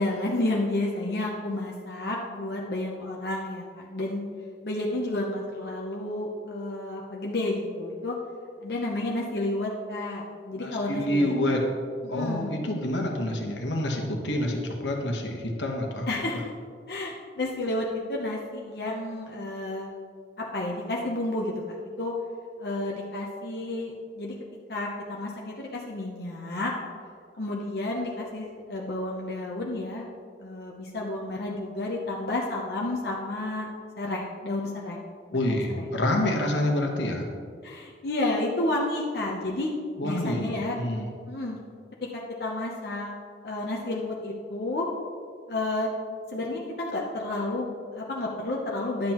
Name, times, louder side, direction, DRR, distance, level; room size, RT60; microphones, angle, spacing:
voice 1, 0.0-4.2 4.6-8.1 8.6-11.5 12.0-12.7 16.1-16.5 16.9-19.9 20.4-22.1 22.6-24.3 24.7-26.7 27.4-30.1 30.4-33.7 34.0-35.0 35.3-35.9 37.6-39.7 40.0-40.8 41.3-41.6 42.1-43.1 43.4-44.9 45.5-45.9 46.3-49.1, left 2 dB, 60° left, -2 dB, 0.8 m, -31 dB
voice 2, 10.6-11.7 12.1-16.1 35.3-37.3 40.0-41.1, left 1 dB, 85° left, 1 dB, 1.2 m, -27 dB
10.5 x 7.6 x 3.0 m, 2.1 s
head